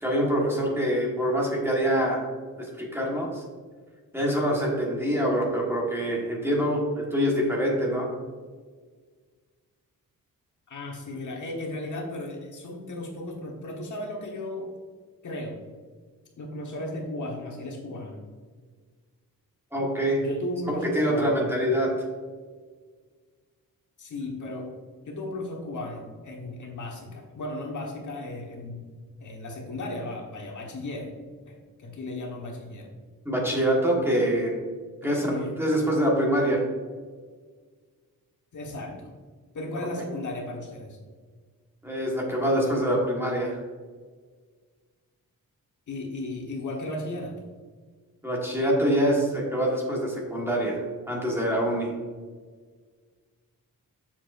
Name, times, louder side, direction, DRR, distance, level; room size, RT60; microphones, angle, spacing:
voice 1, 0.0-2.2 2.6-3.4 4.1-8.1 19.7-20.2 20.7-21.9 33.2-34.5 35.0-36.6 41.8-43.6 48.2-51.9, equal, 5° right, -3 dB, 1.5 m, -25 dB
voice 2, 10.7-14.7 15.2-15.5 16.4-18.2 20.2-21.5 24.0-24.7 25.0-28.8 29.2-31.1 31.5-32.9 35.0-35.6 38.5-39.1 39.5-41.0 45.9-47.3, left 1 dB, 55° left, -1 dB, 1.4 m, -35 dB
7.2 x 7.1 x 2.6 m, 1.5 s
wide cardioid pair, 175°, 35 cm